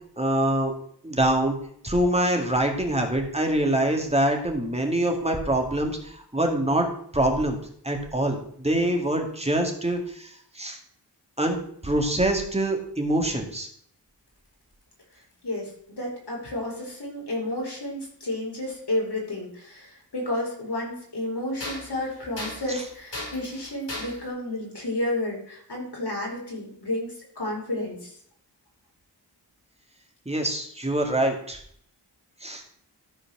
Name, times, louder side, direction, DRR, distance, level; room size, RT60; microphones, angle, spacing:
voice 1, 0.2-0.7 1.0-1.6 1.8-6.9 7.1-7.6 7.8-10.8 11.4-13.7 22.7-22.8 30.3-31.6 32.4-32.6, right 1 dB, 15° right, 2 dB, 2.2 m, -25 dB
sound 1, 14.3-15.7 17.0-17.1 19.2-19.3 20.0-20.1 21.6-24.3, left 2 dB, 85° left, 4.9 m, -38 dB
voice 2, 16.0-28.1, left 1 dB, 65° left, -2 dB, 4.8 m, -31 dB
13.5 x 5.0 x 6.2 m, 0.63 s
wide cardioid pair, 75°, 42 cm